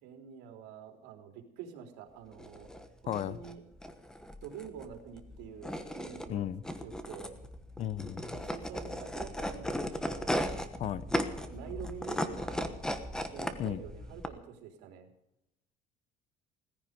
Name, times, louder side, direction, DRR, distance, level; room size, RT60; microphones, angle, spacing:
voice 1, 0.0-2.7 3.0-3.6 4.4-6.5 6.8-7.4 8.3-10.3 10.9-12.8 13.3-15.1, right 8 dB, 80° right, 4 dB, 3.7 m, -47 dB
sound 1, 2.3-14.3, equal, 5° left, 1.2 m, -37 dB
voice 2, 3.1-3.4 6.3-6.6 7.8-8.4 10.8-11.1 13.6-13.8, left 11 dB, 40° left, 18 dB, 0.7 m, -34 dB
17.5 x 15.0 x 5.3 m, 0.78 s
cardioid pair, 165°, 17 cm